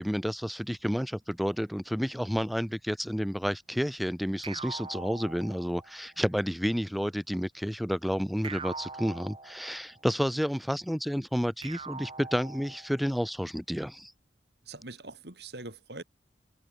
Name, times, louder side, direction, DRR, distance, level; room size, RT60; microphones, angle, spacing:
voice 1, 0.0-14.1, equal, ahead, 1.1 m, -30 dB
sound 1, 4.4-6.1 8.4-10.0 11.6-13.1, right 4 dB, 30° right, 3.6 m, -42 dB
voice 2, 14.6-16.0, right 2 dB, 70° right, 3.4 m, -43 dB
head